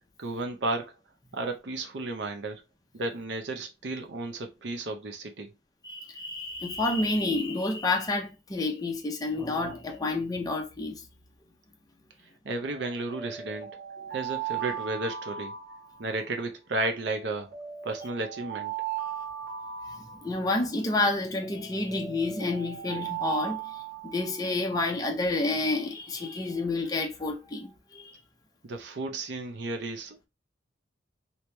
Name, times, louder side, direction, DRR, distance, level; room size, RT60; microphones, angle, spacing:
voice 1, 0.2-0.9 1.3-2.6 2.9-5.5 12.4-13.7 14.1-15.5 16.0-17.5 17.8-18.7 28.6-30.3, right 2 dB, 70° right, 0.6 m, -33 dB
voice 2, 5.8-11.1 14.0-14.2 19.9-28.2, left 2 dB, 20° left, 0.6 m, -29 dB
Alarm, 12.6-16.3 17.0-20.7 21.4-24.6, right 9 dB, 85° right, 1.7 m, -38 dB
3.0 x 2.8 x 3.2 m
head